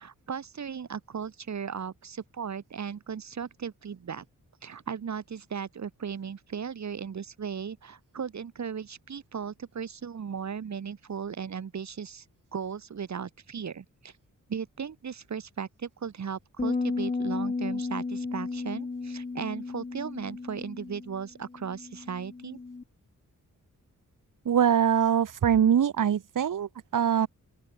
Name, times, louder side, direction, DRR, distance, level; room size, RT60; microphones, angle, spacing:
voice 1, 0.0-4.2 4.6-12.3 12.5-14.1 14.5-22.6, right 7 dB, 60° right, 3.5 m, -36 dB
sound 1, 16.6-22.8, left 3 dB, 25° left, 1.9 m, -34 dB
voice 2, 24.5-27.3, right 8 dB, 75° right, 1.9 m, -23 dB
open air
wide cardioid pair, 145°, 32 cm